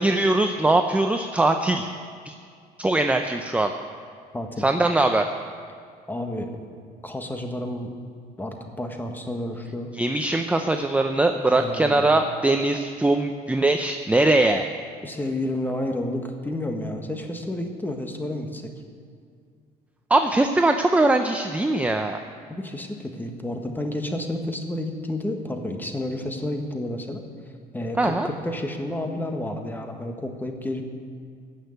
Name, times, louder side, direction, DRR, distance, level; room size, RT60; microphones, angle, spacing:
voice 1, 0.0-1.9 2.2-2.3 2.8-3.7 4.6-5.3 9.9-14.7 20.1-22.2 28.0-28.3, right 2 dB, 10° right, 6 dB, 0.6 m, -21 dB
voice 2, 4.3-4.7 6.1-6.6 7.0-7.9 8.4-9.9 11.5-12.0 15.0-18.7 22.5-27.2 27.7-30.8, left 1 dB, 10° left, 4 dB, 1.6 m, -30 dB
15.5 x 6.6 x 9.4 m, 2.2 s
cardioid pair, 110°, 17 cm